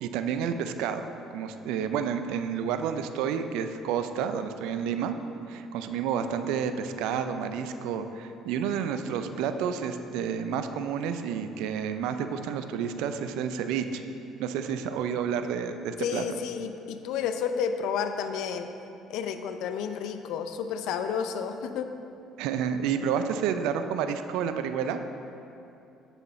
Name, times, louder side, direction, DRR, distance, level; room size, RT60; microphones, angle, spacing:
voice 1, 0.0-5.1 5.5-14.0 14.4-16.2 22.4-25.0, right 7 dB, 75° right, 9 dB, 0.4 m, -30 dB
voice 2, 16.0-18.7 19.1-21.9, left 7 dB, 70° left, 8 dB, 0.5 m, -31 dB
7.3 x 6.9 x 4.2 m, 2.8 s
hypercardioid pair, 60°, 0 cm